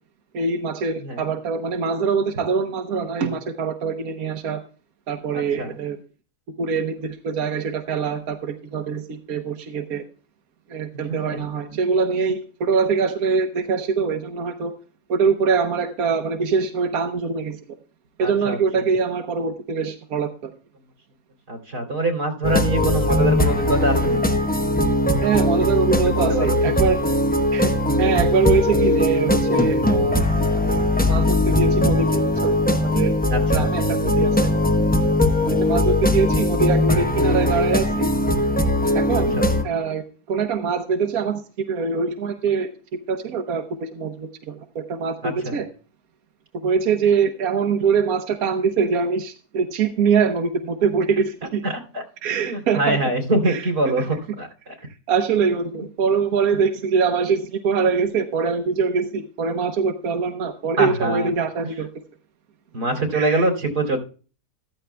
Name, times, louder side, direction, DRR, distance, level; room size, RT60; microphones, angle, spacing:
voice 1, 0.3-4.6 5.1-6.0 6.6-10.0 10.7-14.7 15.1-17.6 18.2-20.5 25.2-27.0 27.5-27.7 28.0-30.2 30.5-33.1 33.5-34.5 35.4-38.1 38.9-39.3 39.6-42.7 43.1-45.6 46.6-51.6 52.2-53.0 53.5-53.6 55.1-61.9 63.1-63.5, right 5 dB, 70° right, 5 dB, 1.4 m, -23 dB
voice 2, 5.3-5.7 11.3-11.4 18.2-18.6 21.5-24.3 25.9-26.7 33.3-33.7 39.1-39.4 45.2-45.6 51.6-52.0 52.4-54.8 56.5-56.6 60.8-61.3 62.7-64.0, right 2 dB, 90° right, 3 dB, 3.4 m, -24 dB
sound 1, 22.4-39.6, left 1 dB, 10° left, 0.6 m, -20 dB
14.5 x 13.5 x 2.2 m, 0.37 s
omnidirectional pair, 1.7 m